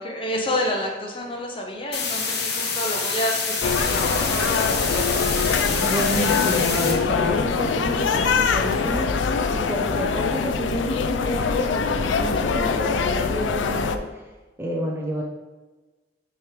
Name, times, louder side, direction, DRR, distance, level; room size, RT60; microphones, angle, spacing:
voice 1, 0.0-5.2, left 1 dB, 30° left, 1 dB, 0.8 m, -29 dB
sound 1, 1.9-6.9, left 5 dB, 60° left, 1.0 m, -27 dB
sound 2, 3.6-14.0, left 5 dB, 75° left, 0.4 m, -23 dB
voice 2, 5.8-9.1 9.5-14.3 14.6-15.2, equal, 10° right, -1 dB, 0.5 m, -29 dB
6.1 x 3.1 x 5.1 m, 1.2 s
head